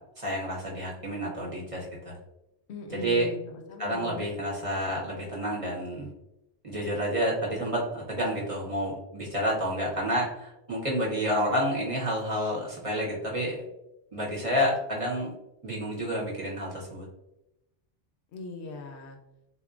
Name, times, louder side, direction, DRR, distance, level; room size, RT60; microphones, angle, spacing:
voice 1, 0.0-2.1 3.0-3.3 3.8-6.1 6.6-13.7 14.1-15.3 15.6-17.0, equal, 35° right, -4 dB, 0.8 m, -29 dB
voice 2, 2.7-4.3 18.3-19.2, left 3 dB, 70° left, 3 dB, 0.8 m, -40 dB
3.6 x 2.6 x 2.4 m, 0.89 s
omnidirectional pair, 1.2 m